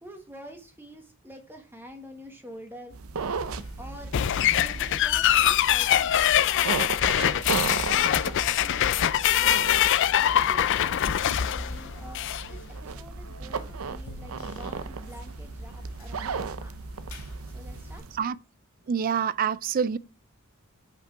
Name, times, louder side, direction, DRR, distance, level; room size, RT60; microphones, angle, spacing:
voice 1, 0.0-3.0 3.8-4.1 4.6-6.2 6.6-9.7 10.2-16.7 17.5-18.0, equal, 10° right, 1.3 m, -47 dB
sound 1, 2.9-18.2, right 5 dB, 80° right, 0.6 m, -36 dB
sound 2, 3.2-18.0, left 1 dB, 85° left, 2.1 m, -45 dB
sound 3, 4.1-12.5, left 11 dB, 60° left, 0.4 m, -23 dB
voice 2, 18.9-20.0, right 7 dB, 40° right, 0.3 m, -26 dB
5.4 x 5.1 x 5.6 m
head